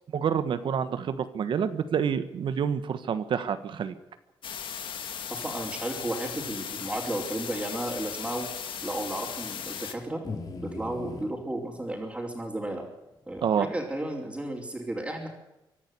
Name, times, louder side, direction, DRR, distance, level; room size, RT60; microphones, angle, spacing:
voice 1, 0.1-3.9 13.4-13.7, right 7 dB, 70° right, 12 dB, 1.4 m, -28 dB
sound 1, 4.4-9.9, left 8 dB, 75° left, 2.2 m, -37 dB
voice 2, 5.3-8.5 8.8-10.2 10.6-12.8 13.3-15.3, right 1 dB, 10° right, -5 dB, 4.5 m, -33 dB
sound 2, 10.2-11.3 12.6-12.7 13.4-13.5, left 3 dB, 45° left, 3.5 m, -38 dB
24.5 x 11.5 x 9.7 m, 0.91 s
cardioid pair, 115°, 9 cm